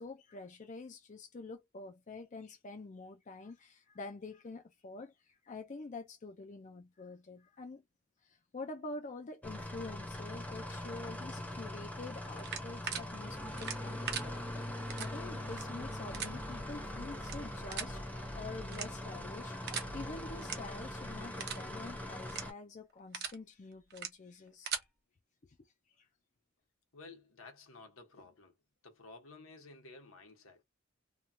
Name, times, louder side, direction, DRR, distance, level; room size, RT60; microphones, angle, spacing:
voice 1, 0.0-7.8 8.2-18.0 18.3-24.9 25.4-26.1, left 3 dB, 35° left, 0.4 m, -47 dB
sound 1, 9.4-22.5, left 1 dB, 5° left, 0.7 m, -42 dB
sound 2, 12.4-13.0 13.6-14.2 14.9-15.1 15.5-15.6 16.1-16.3 17.2-17.3 17.7-17.9 18.7-19.1 19.7-19.9 20.4-20.5 20.9-21.0 21.4-21.6 22.2-22.4 22.9-23.3 23.9-24.1 24.5-24.8, right 7 dB, 50° right, 0.8 m, -39 dB
sound 3, 14.1-21.3, equal, 25° right, 0.5 m, -51 dB
voice 2, 26.9-28.5 28.8-30.6, left 3 dB, 75° left, 1.1 m, -54 dB
3.0 x 2.3 x 2.6 m
head